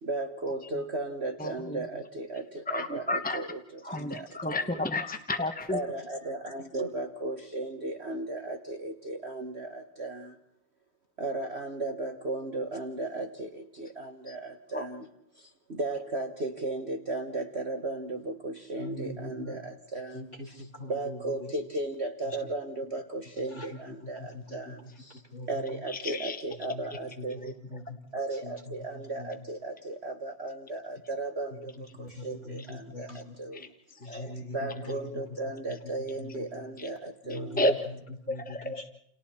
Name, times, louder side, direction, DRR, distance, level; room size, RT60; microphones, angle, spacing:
voice 1, 0.0-4.7 5.7-10.4 11.2-15.1 15.3-25.2 25.5-27.5 28.1-33.7 34.0-34.1 34.5-37.6, right 2 dB, 35° right, 5 dB, 1.5 m, -36 dB
voice 2, 1.4-1.8 2.7-3.4 3.8-5.8 14.3-14.4 14.7-14.9 25.9-26.4 27.4-27.5 33.5-33.7 34.0-34.3 36.8-36.9 37.3-37.8 38.3-38.8, left 1 dB, 5° left, 7 dB, 0.7 m, -31 dB
voice 3, 18.8-19.6 20.1-21.5 22.2-22.4 23.4-24.8 25.3-25.8 26.5-26.8 27.2-28.0 28.3-29.3 31.5-33.4 34.0-35.2 35.7-35.9 36.2-36.6 37.2-38.8, left 2 dB, 35° left, -2 dB, 4.9 m, -43 dB
30.0 x 29.5 x 4.4 m, 0.72 s
omnidirectional pair, 2.0 m